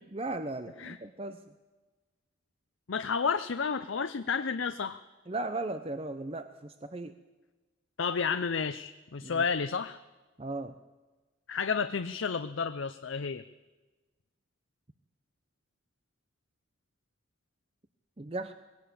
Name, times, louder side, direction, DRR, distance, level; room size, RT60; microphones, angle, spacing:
voice 1, 0.1-1.4 5.3-7.1 9.2-9.4 10.4-10.7 18.2-18.5, right 2 dB, 30° right, 9 dB, 0.7 m, -36 dB
voice 2, 2.9-5.0 8.0-10.0 11.5-13.4, left 5 dB, 80° left, 10 dB, 0.6 m, -31 dB
20.0 x 17.0 x 8.6 m, 1.2 s
head